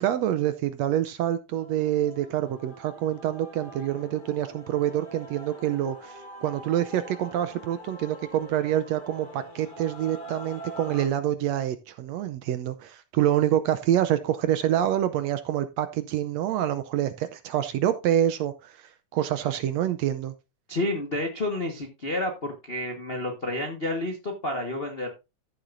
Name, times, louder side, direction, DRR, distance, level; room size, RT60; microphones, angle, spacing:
voice 1, 0.0-18.8 19.1-20.3, right 11 dB, 75° right, 11 dB, 1.6 m, -26 dB
Male singing / Female singing / Musical instrument, 1.6-11.1, right 1 dB, 30° left, 0.9 m, -44 dB
voice 2, 20.7-25.1, left 1 dB, 65° left, 2 dB, 0.5 m, -30 dB
14.5 x 7.0 x 2.6 m, 0.26 s
omnidirectional pair, 3.6 m